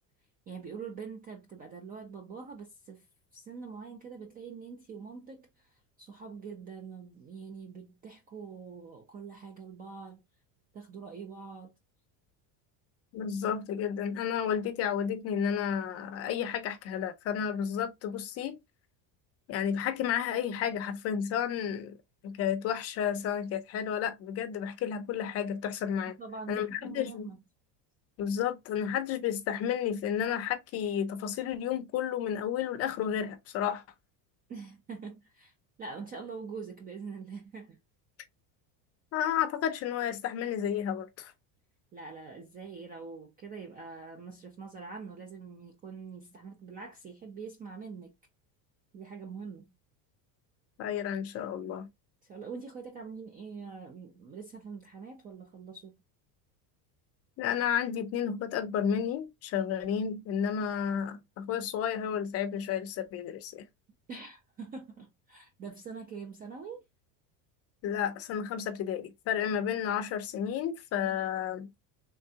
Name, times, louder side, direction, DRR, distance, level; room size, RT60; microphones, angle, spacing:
voice 1, 0.5-3.1 3.3-10.2 10.7-11.7 26.2-27.4 34.5-35.5 35.8-37.8 41.9-48.1 48.9-49.7 52.2-55.9 64.1-66.8, right 5 dB, 20° right, 0.3 m, -44 dB
voice 2, 13.1-18.6 19.5-21.9 22.2-26.1 26.5-27.3 28.2-33.8 39.1-41.3 50.8-51.9 57.4-63.6 67.8-71.7, left 8 dB, 35° left, 0.5 m, -32 dB
3.6 x 3.2 x 2.7 m
cardioid pair, 160°, 44 cm